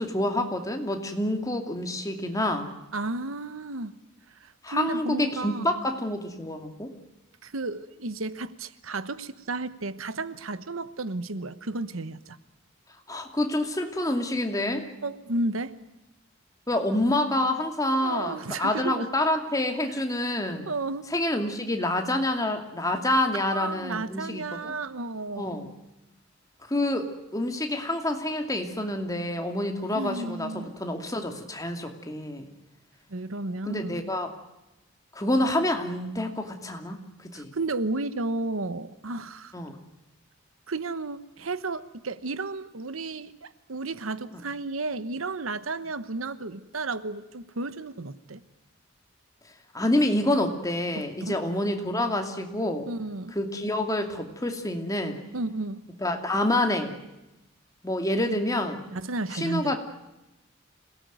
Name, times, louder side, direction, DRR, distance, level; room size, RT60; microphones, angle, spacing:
voice 1, 0.0-2.7 4.6-6.9 13.1-14.9 16.7-20.6 21.1-24.7 25.4-25.7 26.7-27.1 27.3-32.5 33.7-34.3 35.1-37.5 39.5-39.8 49.7-52.9 53.3-55.2 56.0-56.9 57.8-58.8 59.3-59.8, left 1 dB, 15° left, 4 dB, 2.6 m, -27 dB
voice 2, 2.9-3.9 4.4-5.7 7.4-12.4 15.0-15.7 18.0-19.1 19.9-20.0 20.7-21.1 23.4-25.6 29.9-30.7 33.1-34.1 37.3-39.5 40.7-48.4 50.9-51.4 52.9-53.4 55.3-55.8 58.9-59.8, right 2 dB, 85° right, 14 dB, 1.1 m, -33 dB
26.5 x 18.5 x 9.3 m, 0.96 s
head